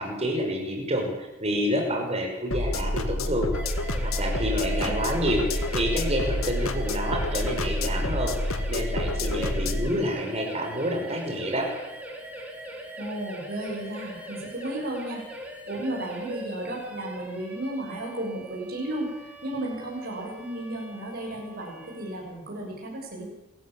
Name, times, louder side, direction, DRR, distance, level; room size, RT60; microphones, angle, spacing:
voice 1, 0.0-3.5 4.0-11.7, equal, 30° right, 2 dB, 5.7 m, -28 dB
sound 1, 2.5-9.9, left 1 dB, 70° left, 2.0 m, -28 dB
sound 2, 3.5-22.2, right 1 dB, 5° right, 4.9 m, -41 dB
voice 2, 13.0-15.2 15.7-19.1 19.4-23.3, right 1 dB, 45° right, -1 dB, 7.1 m, -34 dB
26.5 x 14.5 x 8.8 m, 1.0 s
head